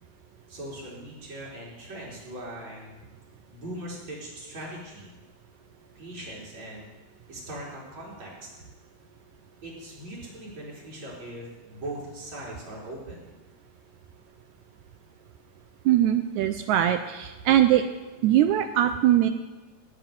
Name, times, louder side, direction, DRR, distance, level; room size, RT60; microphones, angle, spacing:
voice 1, 0.5-3.0 3.5-5.2 5.9-6.9 7.3-8.5 9.6-13.3, right 1 dB, 60° right, -6 dB, 5.4 m, -40 dB
voice 2, 15.9-17.8 18.2-19.3, right 12 dB, 80° right, 7 dB, 2.0 m, -21 dB
17.0 x 5.8 x 9.1 m, 1.2 s
omnidirectional pair, 3.4 m